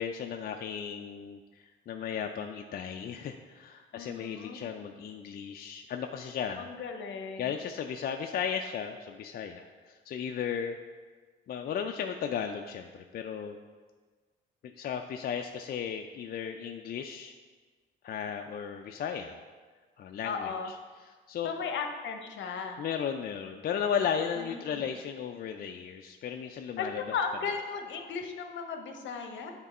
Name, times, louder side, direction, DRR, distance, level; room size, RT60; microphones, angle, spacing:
voice 1, 0.0-6.7 7.4-10.8 11.5-13.6 14.6-17.3 18.0-19.4 20.0-20.7 21.0-21.5 22.8-27.0, left 7 dB, 50° left, 4 dB, 0.4 m, -35 dB
voice 2, 3.9-4.6 6.6-7.6 20.2-20.7 21.4-22.8 24.4-24.8 26.8-29.5, left 5 dB, 70° left, 5 dB, 0.8 m, -36 dB
8.0 x 3.6 x 4.2 m, 1.4 s
cardioid pair, 90°, 20 cm